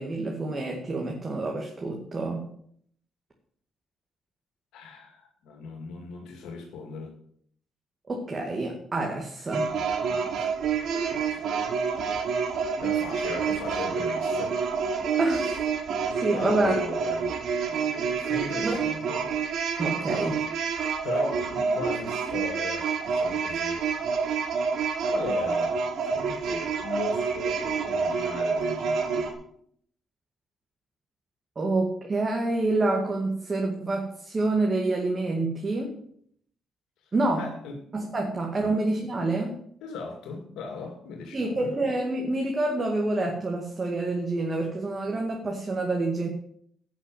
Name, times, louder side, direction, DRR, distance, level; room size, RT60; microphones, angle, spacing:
voice 1, 0.0-2.5 8.1-9.7 15.2-15.6 16.2-16.7 18.6-18.8 19.8-20.4 31.6-36.0 37.1-37.5 37.9-39.6 41.3-46.3, right 2 dB, 30° right, 2.1 m, -27 dB
voice 2, 4.7-7.1 10.1-10.5 11.1-11.4 12.8-14.6 16.3-17.4 17.7-19.3 21.0-23.9 25.0-29.3 37.4-37.8 38.6-38.8 39.8-41.7, left 4 dB, 90° left, 2.2 m, -38 dB
sound 1, 9.5-29.3, right 5 dB, 70° right, 1.9 m, -28 dB
11.5 x 6.2 x 7.7 m
cardioid pair, 90°, 0 cm